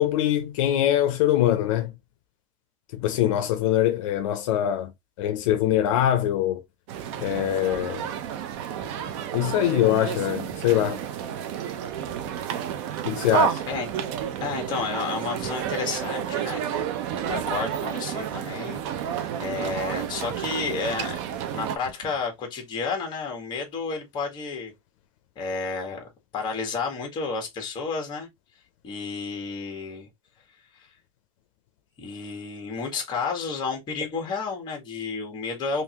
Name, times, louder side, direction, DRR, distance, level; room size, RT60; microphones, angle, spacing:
voice 1, 0.0-1.9 2.9-4.9 5.2-6.6 7.2-8.1 9.3-11.0 13.0-13.6, left 12 dB, 75° left, 0.6 m, -23 dB
sound 1, 6.9-21.8, right 9 dB, 60° right, 0.7 m, -30 dB
sound 2, 7.2-7.7 8.6-9.3 10.5-10.9 12.0-12.5 13.7-14.1 15.4-15.8 17.1-17.5 18.7-19.1 20.3-20.7 21.8-22.3, right 3 dB, 90° right, 1.6 m, -47 dB
voice 2, 14.4-16.6 17.3-21.2 21.5-24.7 25.3-26.0 26.3-28.3 28.8-30.1 30.7-30.9 32.0-35.8, left 4 dB, 25° left, 1.4 m, -31 dB
3.6 x 2.7 x 2.9 m
supercardioid pair, 155°, 17 cm